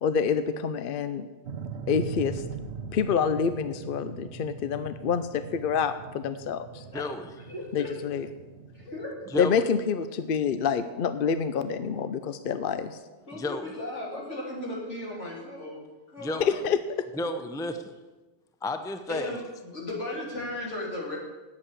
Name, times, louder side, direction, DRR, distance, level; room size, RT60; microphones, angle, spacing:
voice 1, 0.0-1.3 1.9-2.4 2.9-6.8 7.7-8.3 9.4-13.0 16.4-16.8, left 6 dB, 55° left, 11 dB, 0.7 m, -27 dB
sound 1, 1.4-9.7, right 5 dB, 70° right, 1.2 m, -41 dB
voice 2, 6.9-7.3 9.3-9.6 13.3-13.7 16.2-16.6 17.2-17.9 18.6-19.4, left 1 dB, 5° left, 8 dB, 0.5 m, -32 dB
voice 3, 7.5-7.9 8.7-9.1 13.3-15.8 16.1-16.6 19.1-21.2, left 1 dB, 80° left, -3 dB, 3.6 m, -36 dB
9.0 x 8.5 x 8.4 m, 1.2 s
omnidirectional pair, 1.2 m